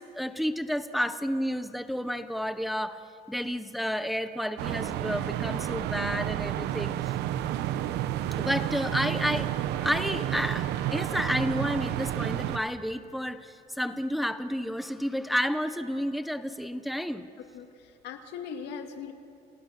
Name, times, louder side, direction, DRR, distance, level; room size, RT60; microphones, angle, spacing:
voice 1, 0.0-3.0 3.3-7.1 8.4-9.5 9.8-17.3, equal, ahead, 9 dB, 1.2 m, -31 dB
sound 1, 4.6-12.6, right 12 dB, 85° right, 1.0 m, -30 dB
voice 2, 17.4-19.1, left 6 dB, 85° left, 5 dB, 2.5 m, -40 dB
29.5 x 27.5 x 6.1 m, 2.6 s
cardioid pair, 110°, 17 cm